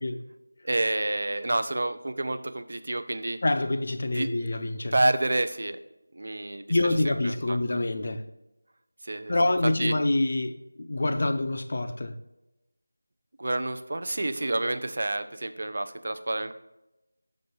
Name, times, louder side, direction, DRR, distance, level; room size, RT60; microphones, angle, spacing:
voice 1, 0.6-3.4 4.1-4.3 4.9-5.8 6.1-6.7 7.1-7.6 9.0-9.3 9.8-9.9 13.4-16.5, right 2 dB, 45° right, 10 dB, 0.5 m, -28 dB
voice 2, 3.4-4.9 6.7-8.2 9.3-12.1, left 2 dB, 40° left, 8 dB, 0.5 m, -26 dB
6.2 x 5.2 x 4.4 m, 0.95 s
figure-of-eight pair, 165°, 0 cm